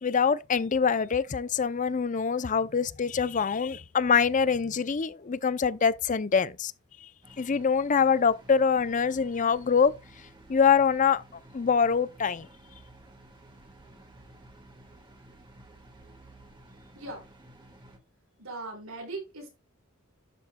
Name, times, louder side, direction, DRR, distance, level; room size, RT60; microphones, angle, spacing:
voice 1, 0.0-6.7 7.4-9.9 10.5-11.2 11.5-12.5, left 6 dB, 35° left, 0.5 m, -24 dB
sound 1, 7.2-18.0, right 1 dB, 20° right, 1.9 m, -53 dB
voice 2, 18.4-19.5, right 2 dB, 80° right, 5.1 m, -39 dB
11.5 x 7.0 x 2.3 m
head